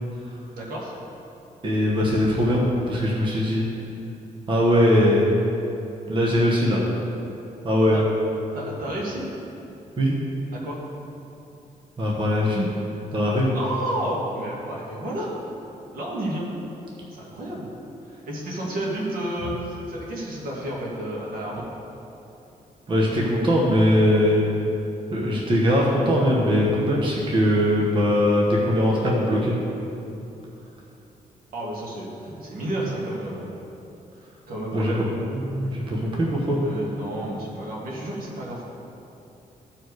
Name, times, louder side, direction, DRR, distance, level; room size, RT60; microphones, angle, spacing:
voice 1, 0.5-1.0 7.9-8.0 8.5-9.3 10.5-10.8 13.5-15.4 15.9-16.5 17.1-17.7 18.1-21.7 31.5-33.5 34.5-35.1 36.6-38.6, right 1 dB, 75° right, -4 dB, 2.0 m, -31 dB
voice 2, 1.6-3.7 4.5-5.2 6.1-6.8 7.6-8.0 10.0-10.1 12.0-12.7 13.1-13.6 22.9-24.4 25.1-29.6 32.8-32.9 34.7-34.9 35.3-36.6, equal, 35° right, -4 dB, 1.1 m, -21 dB
14.0 x 4.6 x 4.8 m, 2.9 s
wide cardioid pair, 165°, 15 cm